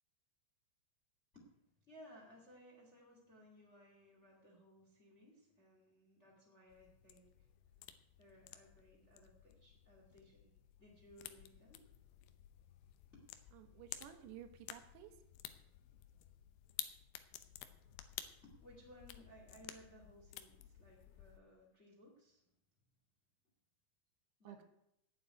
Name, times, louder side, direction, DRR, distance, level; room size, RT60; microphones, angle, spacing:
voice 1, 1.3-7.5 8.2-10.5 10.8-11.9 12.1-12.2 13.1-13.2 18.4-22.5 24.4-24.6, equal, 25° left, -1 dB, 1.8 m, -61 dB
sound 1, 6.7-21.4, left 12 dB, 75° left, 2.4 m, -53 dB
voice 2, 13.5-15.2 24.4-24.6, right 10 dB, 80° right, 7 dB, 3.3 m, -54 dB
8.9 x 8.2 x 9.2 m, 0.80 s
omnidirectional pair, 5.0 m